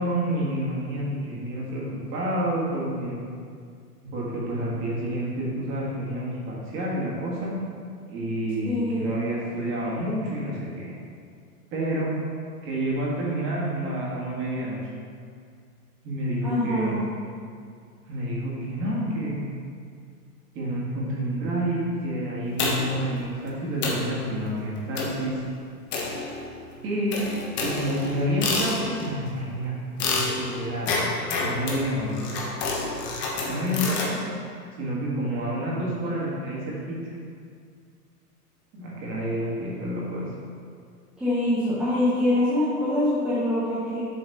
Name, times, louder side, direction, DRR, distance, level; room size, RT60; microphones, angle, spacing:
voice 1, 0.0-3.2 4.1-7.6 8.1-10.9 11.7-12.2 12.6-14.8 16.0-17.0 18.1-19.4 20.5-25.4 26.8-27.2 27.6-29.7 30.1-30.9 31.4-32.3 33.5-34.2 34.7-37.1 38.7-40.3, right 1 dB, 25° right, -5 dB, 1.7 m, -29 dB
voice 2, 8.7-9.2 16.4-17.0 41.2-44.1, left 1 dB, ahead, -12 dB, 0.7 m, -24 dB
sound 1, 22.6-23.1 23.5-23.6 23.8-24.1 25.0-25.3 25.9-26.6 27.1-29.1 30.0-34.1, left 3 dB, 25° left, 1.0 m, -28 dB
7.5 x 3.9 x 5.5 m, 2.2 s
hypercardioid pair, 145°, 47 cm